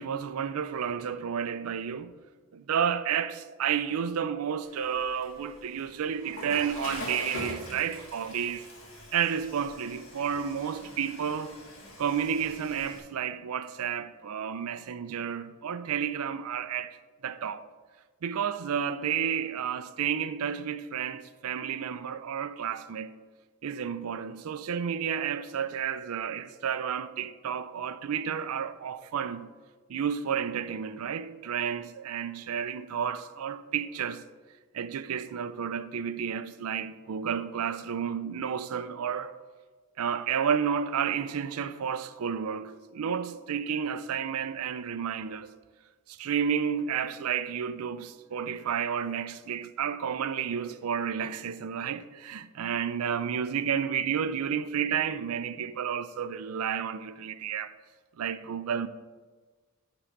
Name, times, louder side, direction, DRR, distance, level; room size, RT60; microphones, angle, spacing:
voice 1, 0.0-2.1 2.5-8.7 9.1-11.6 12.0-17.0 17.2-17.7 18.2-23.1 23.6-29.5 29.9-34.2 34.7-39.3 40.0-45.5 46.1-57.7 58.2-58.9, right 7 dB, 85° right, 0.4 m, -31 dB
Water / Toilet flush, 4.6-13.0, left 1 dB, 65° left, 1.9 m, -43 dB
11.0 x 3.8 x 4.5 m
head